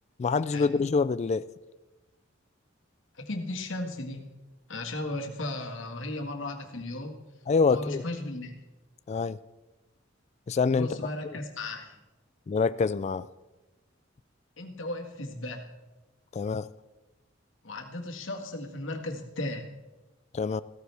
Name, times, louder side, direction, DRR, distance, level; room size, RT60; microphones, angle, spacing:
voice 1, 0.2-1.4 7.5-8.0 9.1-9.4 10.5-10.9 12.5-13.3 16.3-16.7 20.3-20.6, left 4 dB, 35° left, 15 dB, 0.3 m, -25 dB
voice 2, 3.2-4.3 4.7-7.2 7.7-8.5 10.7-12.0 14.6-15.7 17.6-19.7, left 2 dB, 75° left, 3 dB, 1.8 m, -35 dB
15.0 x 14.0 x 3.4 m, 1.1 s
head